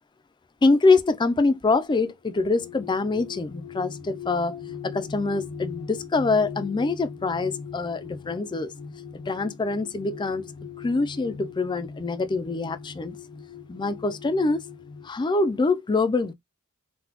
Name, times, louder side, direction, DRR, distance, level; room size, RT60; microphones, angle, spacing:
voice 1, 0.6-8.7 9.1-10.5 10.8-13.2 13.7-14.6 15.0-16.3, left 3 dB, 20° left, 0.3 m, -24 dB
sound 1, 2.3-15.1, left 6 dB, 80° left, 0.6 m, -40 dB
4.0 x 2.2 x 2.8 m
head